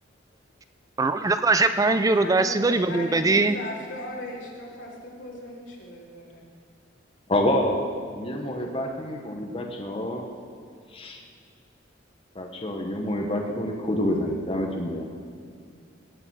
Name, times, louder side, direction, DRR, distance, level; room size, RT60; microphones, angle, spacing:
voice 1, 1.0-3.6, right 3 dB, 20° right, 10 dB, 0.3 m, -21 dB
voice 2, 2.0-6.4, left 1 dB, 75° left, -4 dB, 3.0 m, -38 dB
voice 3, 7.3-7.9 8.1-10.3 10.9-11.2 12.3-15.0, left 1 dB, 30° left, 1 dB, 1.0 m, -27 dB
18.0 x 6.8 x 6.2 m, 2.2 s
head